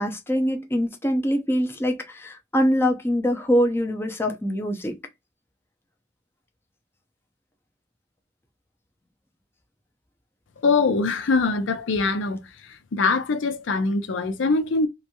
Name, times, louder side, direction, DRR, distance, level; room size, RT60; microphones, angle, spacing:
voice 1, 0.0-5.0, equal, 10° left, 0.5 m, -24 dB
voice 2, 10.6-12.4 12.9-14.9, left 4 dB, 85° left, 0.5 m, -22 dB
2.9 x 2.6 x 2.2 m
head